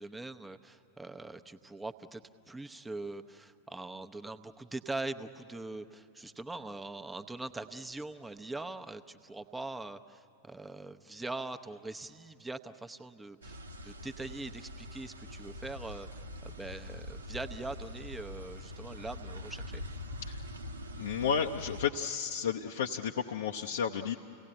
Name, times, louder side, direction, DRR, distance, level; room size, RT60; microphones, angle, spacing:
voice 1, 0.0-2.2 2.5-19.8, right 2 dB, 10° right, 9 dB, 0.9 m, -42 dB
sound 1, 13.4-21.9, left 1 dB, 75° right, 1.0 m, -44 dB
voice 2, 21.0-24.1, left 7 dB, 65° left, 1 dB, 0.7 m, -32 dB
29.5 x 18.0 x 8.9 m, 2.8 s
figure-of-eight pair, 90°, 0 cm